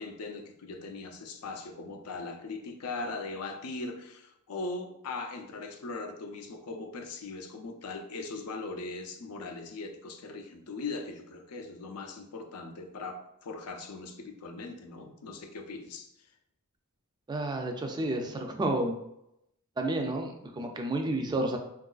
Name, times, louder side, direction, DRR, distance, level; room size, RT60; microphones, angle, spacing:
voice 1, 0.0-16.1, left 3 dB, 80° left, 5 dB, 0.5 m, -40 dB
voice 2, 17.3-19.0 19.8-21.6, right 2 dB, 20° right, 3 dB, 0.3 m, -30 dB
3.7 x 2.4 x 2.3 m, 0.80 s
head